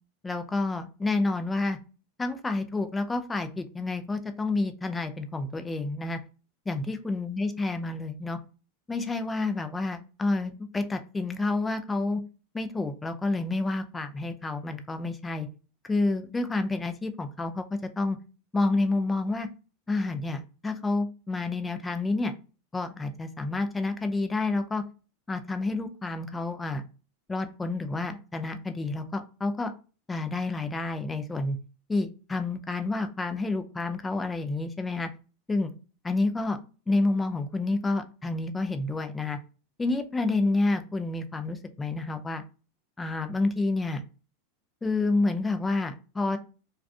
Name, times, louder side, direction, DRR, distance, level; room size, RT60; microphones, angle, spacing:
voice 1, 0.2-1.8 2.2-6.2 6.7-8.4 8.9-12.2 12.5-15.5 15.9-18.2 18.5-19.5 19.9-22.3 22.7-24.8 25.3-26.9 27.3-29.7 30.1-31.6 31.9-35.1 35.5-35.7 36.0-36.6 36.9-39.4 39.8-42.4 43.0-44.0 44.8-46.4, left 2 dB, 15° left, 8 dB, 0.4 m, -29 dB
2.3 x 2.2 x 2.5 m, 0.35 s
hypercardioid pair, 95°, 0 cm